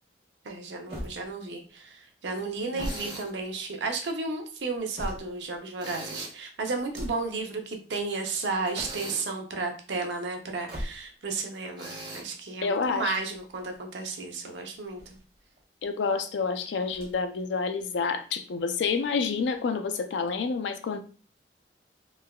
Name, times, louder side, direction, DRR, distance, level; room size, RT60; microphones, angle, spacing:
voice 1, 0.4-15.0, right 3 dB, 80° right, 4 dB, 0.5 m, -33 dB
sound 1, 0.9-1.7 2.5-3.9 4.5-5.6 6.7-7.4 8.5-9.3 10.5-11.3 12.8-13.8 14.7-15.6 16.8-17.4 17.7-17.8 18.8-19.6, equal, 60° right, 1.0 m, -41 dB
Tools, 2.8-3.3 5.8-6.4 8.8-9.3 11.8-12.2, right 2 dB, 25° right, 0.8 m, -40 dB
voice 2, 12.6-13.1 15.8-21.0, left 5 dB, 85° left, 8 dB, 0.4 m, -28 dB
3.2 x 2.2 x 2.2 m, 0.38 s
head